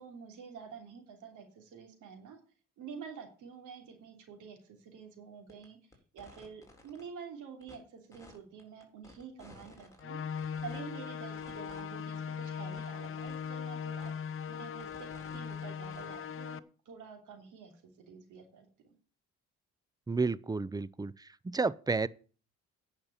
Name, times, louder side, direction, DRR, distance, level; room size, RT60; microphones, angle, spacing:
voice 1, 0.0-2.4 2.8-5.8 6.1-10.2 10.6-16.6 16.8-17.7 18.1-18.9, right 6 dB, 85° right, 3.1 m, -48 dB
sound 1, 5.5-5.6 5.9-7.0 7.6-7.8 8.1-10.0 10.4-10.8 11.3-11.8 12.2-12.3 12.4-12.5 12.7-13.5 14.0-14.1 14.5-16.2, left 2 dB, 10° left, 3.9 m, -55 dB
sound 2, 10.0-16.6, left 7 dB, 45° left, 0.7 m, -39 dB
voice 2, 20.1-21.1 21.4-22.1, right 4 dB, 15° right, 0.5 m, -31 dB
10.0 x 5.8 x 7.2 m
cardioid pair, 90°, 30 cm